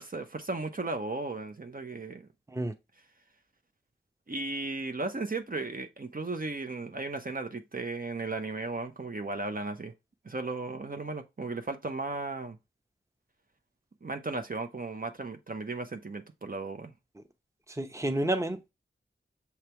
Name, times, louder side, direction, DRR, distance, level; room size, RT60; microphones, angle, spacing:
voice 1, 0.0-2.3 4.3-9.9 10.2-12.6 14.0-16.9, right 3 dB, 45° right, 0.8 m, -35 dB
voice 2, 17.8-18.7, right 1 dB, 15° right, 0.9 m, -30 dB
7.0 x 3.3 x 4.4 m
wide cardioid pair, 50°, 20 cm